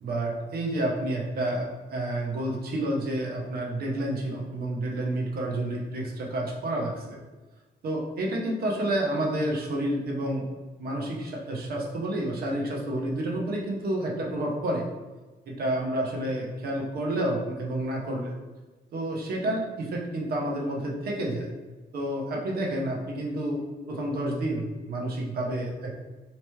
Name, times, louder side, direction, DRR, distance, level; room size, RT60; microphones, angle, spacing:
voice 1, 0.0-7.2 7.8-10.5 10.8-14.9 15.5-18.4 18.9-21.5 21.9-23.6 23.9-26.0, right 1 dB, 60° right, -1 dB, 0.8 m, -29 dB
3.3 x 2.9 x 3.1 m, 1.2 s
wide cardioid pair, 165°, 17 cm